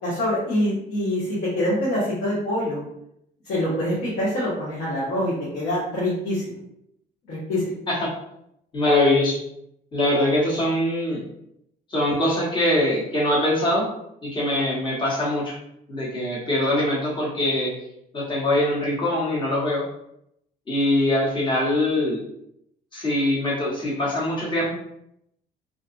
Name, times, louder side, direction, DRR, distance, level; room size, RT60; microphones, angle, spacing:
voice 1, 0.0-2.8 3.4-6.5 7.3-7.6, left 1 dB, 90° left, -8 dB, 1.0 m, -25 dB
voice 2, 8.7-9.4 9.9-11.2 11.9-13.9 14.2-15.5 15.9-17.7 18.1-19.8 20.7-22.2 22.9-24.7, left 1 dB, 30° left, -4 dB, 1.0 m, -22 dB
2.6 x 2.3 x 2.5 m, 0.78 s
cardioid pair, 110°, 17 cm